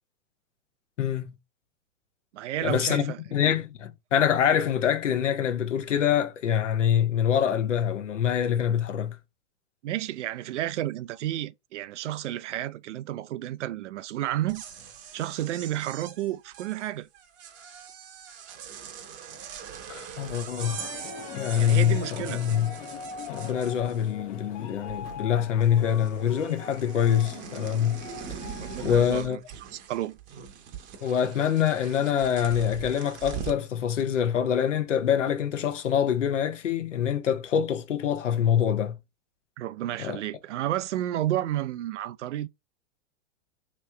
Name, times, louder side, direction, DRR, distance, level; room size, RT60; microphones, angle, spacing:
voice 1, 1.0-1.3 2.6-9.2 19.9-20.9 21.4-22.7 23.3-28.0 28.8-29.4 31.0-39.0 40.0-40.2, left 9 dB, 90° left, 0.8 m, -25 dB
voice 2, 2.3-3.2 9.8-14.6 15.1-17.1 21.6-22.4 28.6-30.2 39.6-42.5, right 13 dB, 75° right, 0.5 m, -31 dB
sound 1, 14.3-24.3 24.6-25.4 25.6-33.7, right 8 dB, 30° right, 0.8 m, -42 dB
sound 2, 20.6-28.9, left 7 dB, 25° left, 0.5 m, -41 dB
3.1 x 3.0 x 3.3 m
hypercardioid pair, 125°, 36 cm